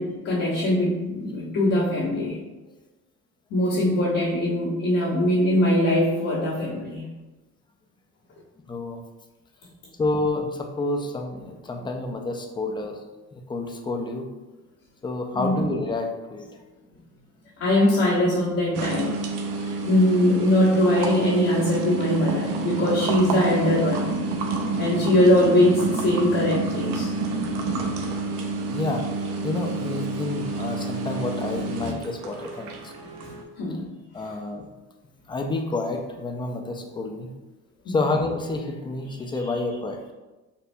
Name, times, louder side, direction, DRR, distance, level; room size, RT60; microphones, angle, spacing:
voice 1, 0.0-2.4 3.5-7.1 15.3-15.5 17.6-19.2 19.6-24.2 24.8-27.1 33.6-33.9 34.2-34.3 37.8-38.0, left 1 dB, 75° left, -12 dB, 1.3 m, -22 dB
voice 2, 8.7-9.0 10.0-13.0 13.3-14.3 15.0-16.5 24.7-24.8 28.7-29.1 29.4-32.9 34.1-34.7 35.3-37.3 37.9-40.1, left 2 dB, 15° left, 3 dB, 0.3 m, -29 dB
sound 1, 18.7-33.4, right 3 dB, 75° right, 0.5 m, -29 dB
4.2 x 2.1 x 2.6 m, 1.1 s
cardioid pair, 110°, 33 cm